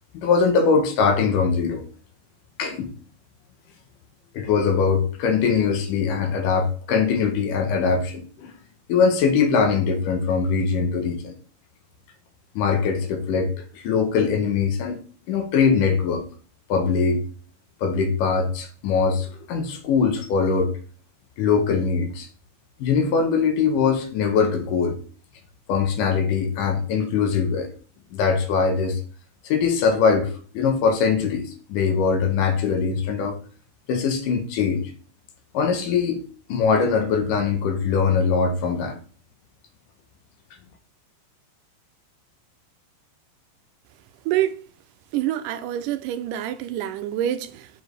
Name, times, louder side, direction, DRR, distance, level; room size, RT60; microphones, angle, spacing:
voice 1, 0.1-1.8 2.6-2.9 4.3-8.5 8.9-11.4 12.6-15.0 15.3-16.2 16.7-17.3 17.8-20.8 21.4-22.3 22.8-25.0 25.7-27.7 28.1-29.0 29.4-33.4 33.9-34.9 35.5-36.2 36.5-39.0, left 5 dB, 80° left, 2.5 m, -22 dB
voice 2, 44.3-44.6 45.1-47.7, right 12 dB, 80° right, 2.1 m, -26 dB
7.1 x 4.7 x 3.3 m
omnidirectional pair, 3.8 m